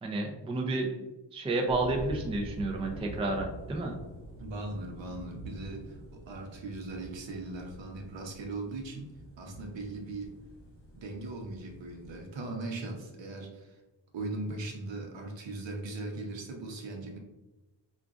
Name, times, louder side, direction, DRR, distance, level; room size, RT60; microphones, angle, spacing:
voice 1, 0.0-3.9, right 2 dB, 15° right, 2 dB, 0.3 m, -31 dB
sound 1, 1.7-12.3, right 1 dB, 30° left, 1.2 m, -46 dB
voice 2, 4.4-9.1 9.4-10.3 10.9-13.8 14.1-17.2, right 2 dB, 70° right, 2 dB, 0.8 m, -39 dB
4.8 x 2.4 x 2.4 m, 1.1 s
wide cardioid pair, 130°, 46 cm